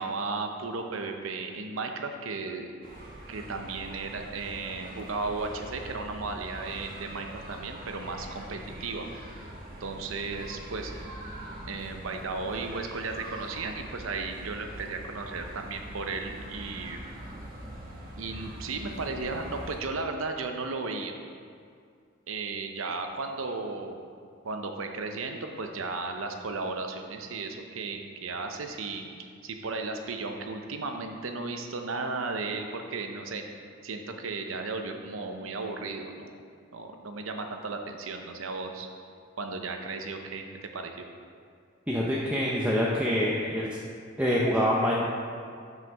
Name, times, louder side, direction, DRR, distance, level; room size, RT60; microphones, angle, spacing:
voice 1, 0.0-2.7 3.3-9.1 9.8-10.9 11.7-17.0 18.2-21.1 22.3-24.0 24.4-29.1 29.4-33.4 33.8-36.3 36.7-38.9 39.4-41.0, right 3 dB, 85° right, 4 dB, 0.7 m, -35 dB
sound 1, 2.8-19.8, right 1 dB, 45° right, 1.2 m, -43 dB
voice 2, 41.9-43.7 44.2-44.9, equal, 5° right, -5 dB, 0.6 m, -25 dB
5.8 x 5.7 x 5.3 m, 2.3 s
head